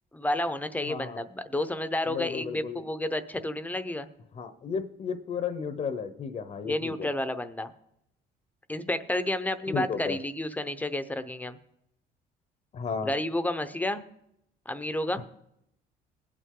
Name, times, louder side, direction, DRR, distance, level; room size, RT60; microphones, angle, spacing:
voice 1, 0.1-4.1 6.6-7.7 8.7-11.6 13.0-14.0 14.7-15.2, left 1 dB, 10° left, 11 dB, 0.7 m, -30 dB
voice 2, 0.8-1.2 2.1-2.8 4.3-7.1 9.7-10.2 12.7-13.1 15.2-15.3, left 6 dB, 40° left, 10 dB, 0.8 m, -34 dB
20.0 x 8.5 x 3.8 m, 0.79 s
cardioid pair, 110°, 17 cm